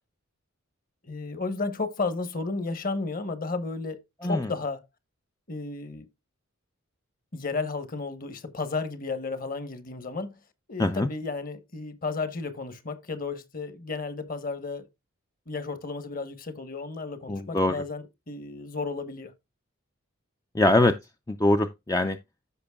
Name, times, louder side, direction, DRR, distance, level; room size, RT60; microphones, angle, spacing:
voice 1, 1.0-4.8 5.5-6.1 7.3-10.4 10.7-14.9 15.5-19.3, left 3 dB, 40° left, 1.1 m, -33 dB
voice 2, 17.3-17.8 20.5-21.0 21.3-22.2, left 2 dB, 15° left, 0.4 m, -23 dB
14.0 x 5.4 x 2.3 m
head